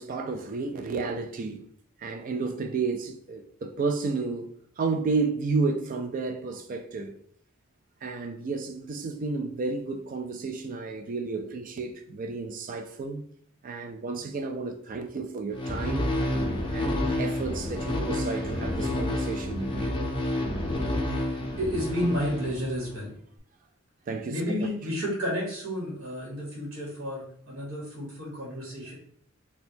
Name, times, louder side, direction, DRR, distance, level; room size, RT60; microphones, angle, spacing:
voice 1, 0.0-1.6 2.0-7.2 8.0-13.2 13.6-16.1 16.7-19.9 24.1-24.7, right 4 dB, 40° right, 0.3 m, -32 dB
sound 1, 15.5-23.0, left 1 dB, 25° left, 0.5 m, -29 dB
voice 2, 21.6-23.1 24.3-28.9, equal, 65° right, 1.2 m, -31 dB
4.3 x 2.2 x 2.7 m
head